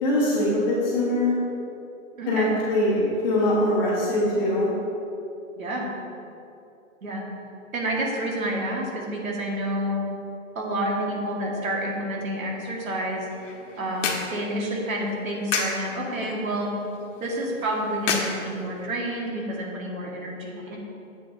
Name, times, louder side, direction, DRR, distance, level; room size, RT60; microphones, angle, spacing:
voice 1, 0.0-1.3 2.3-4.7, left 1 dB, 15° left, -8 dB, 1.3 m, -22 dB
voice 2, 2.2-2.5 5.6-5.9 7.0-7.2 7.7-10.0 10.6-13.3 13.8-16.7 17.2-20.8, right 1 dB, 85° right, -1 dB, 1.8 m, -29 dB
sound 1, 13.1-19.1, left 4 dB, 65° left, 1.2 m, -33 dB
9.3 x 7.6 x 2.7 m, 2.8 s
hypercardioid pair, 175°, 40 cm